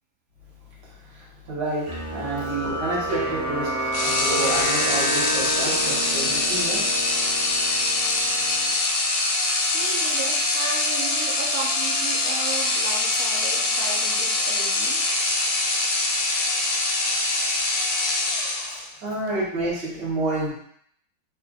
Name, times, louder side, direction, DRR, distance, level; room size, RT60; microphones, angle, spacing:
voice 1, 1.0-6.8 19.0-20.5, right 2 dB, 55° right, -5 dB, 1.7 m, -29 dB
sound 1, 1.9-8.7, right 1 dB, 40° right, 1.9 m, -29 dB
sound 2, 3.9-19.0, left 2 dB, 85° left, 1.6 m, -24 dB
voice 2, 6.5-6.8 8.1-8.5 9.7-15.0 18.5-19.2, right 5 dB, 80° right, -2 dB, 0.7 m, -36 dB
3.5 x 3.3 x 2.3 m, 0.66 s
omnidirectional pair, 2.4 m